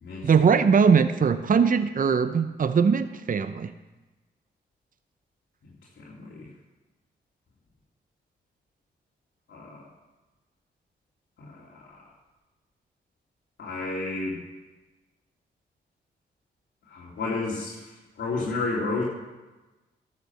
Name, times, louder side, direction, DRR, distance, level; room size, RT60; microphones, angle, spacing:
voice 1, 0.2-3.7, right 6 dB, 45° right, 11 dB, 0.7 m, -21 dB
voice 2, 6.0-6.5 9.5-9.7 11.7-11.8 13.6-14.4 16.9-17.7 18.2-19.0, left 3 dB, 75° left, -6 dB, 2.7 m, -30 dB
12.0 x 6.6 x 7.1 m, 1.1 s
cardioid pair, 55°, 19 cm